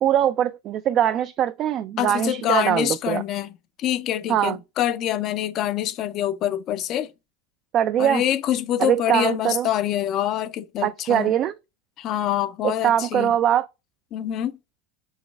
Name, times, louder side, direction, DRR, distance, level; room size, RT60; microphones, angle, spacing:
voice 1, 0.0-3.2 4.3-4.6 7.7-8.2 8.8-9.7 10.8-11.5 12.6-13.7, right 10 dB, 40° right, 0.3 m, -22 dB
voice 2, 2.0-7.1 8.0-11.3 12.0-13.3 14.1-14.6, left 11 dB, 45° left, 0.5 m, -25 dB
4.8 x 4.0 x 2.3 m
supercardioid pair, 120°, 0 cm